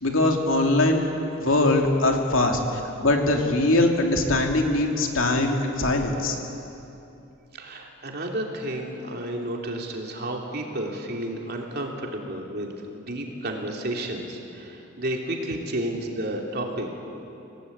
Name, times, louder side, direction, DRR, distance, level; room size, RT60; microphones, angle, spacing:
voice 1, 0.0-1.0 1.4-6.4, left 2 dB, 70° left, 2 dB, 2.8 m, -22 dB
voice 2, 7.5-16.9, right 1 dB, 50° right, 1 dB, 3.0 m, -31 dB
26.5 x 18.0 x 8.7 m, 2.9 s
head